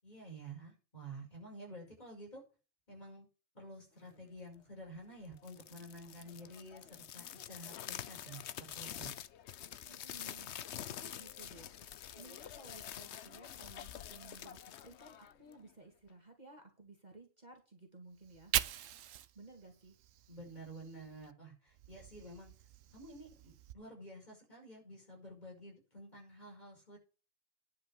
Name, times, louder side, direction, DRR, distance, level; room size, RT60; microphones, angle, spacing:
voice 1, 0.0-2.4 2.9-3.3 3.5-9.1 20.3-22.5 22.9-27.0, right 1 dB, 35° left, -1 dB, 5.9 m, -51 dB
sound 1, 5.3-15.7, left 10 dB, 65° left, 0.9 m, -47 dB
voice 2, 9.9-18.5 19.3-20.0, right 3 dB, 35° right, 2 dB, 2.6 m, -57 dB
Fire, 18.2-21.3 21.7-23.7, right 11 dB, 90° right, 1.1 m, -41 dB
11.0 x 5.6 x 7.0 m, 0.33 s
omnidirectional pair, 1.3 m